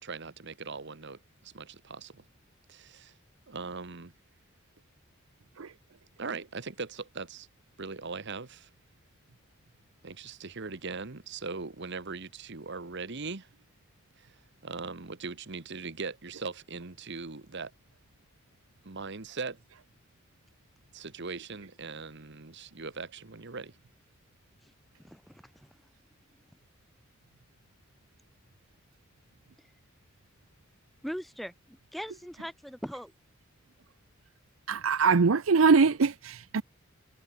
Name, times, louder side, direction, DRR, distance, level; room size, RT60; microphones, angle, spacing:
voice 1, 0.0-2.2 2.7-3.1 3.5-4.1 6.2-7.5 7.8-8.7 10.0-13.5 14.2-14.3 14.6-17.7 18.8-19.6 20.9-23.7, right 4 dB, 55° right, 1.3 m, -40 dB
voice 2, 25.0-25.7 31.0-33.1, equal, ahead, 1.1 m, -40 dB
voice 3, 34.7-36.6, right 4 dB, 75° right, 0.7 m, -23 dB
head